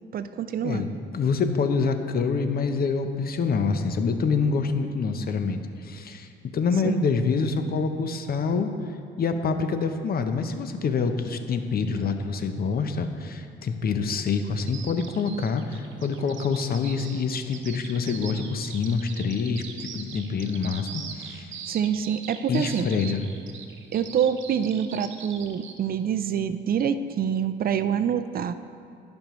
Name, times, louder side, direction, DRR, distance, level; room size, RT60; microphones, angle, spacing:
voice 1, 0.1-0.8 6.8-7.0 21.7-22.9 23.9-28.5, right 8 dB, 50° right, 11 dB, 0.4 m, -26 dB
voice 2, 1.1-8.7 9.2-21.5 22.5-23.2, left 5 dB, 50° left, 8 dB, 0.7 m, -26 dB
Bird vocalization bird call bird song, 14.7-25.8, right 7 dB, 70° right, 0.8 m, -41 dB
15.0 x 5.3 x 3.1 m, 2.4 s
cardioid pair, 90°, 20 cm